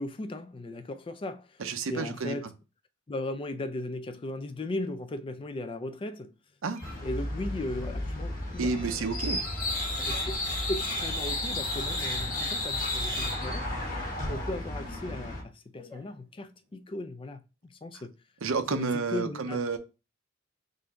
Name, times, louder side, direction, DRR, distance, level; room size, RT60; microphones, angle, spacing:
voice 1, 0.0-1.5 1.9-2.5 3.1-6.3 7.0-9.0 10.1-10.3 10.7-13.7 14.3-17.4 17.8-18.1 18.7-19.6, left 2 dB, 25° left, 0.4 m, -37 dB
voice 2, 1.6-2.4 6.6-6.8 8.6-9.4 18.4-19.8, right 4 dB, 80° right, 0.6 m, -30 dB
sound 1, 6.8-15.4, left 1 dB, 50° left, 1.4 m, -32 dB
sound 2, 6.8-7.2 7.5-12.4 12.7-13.7 14.0-16.8, left 2 dB, 10° left, 1.6 m, -51 dB
3.8 x 2.5 x 4.3 m
head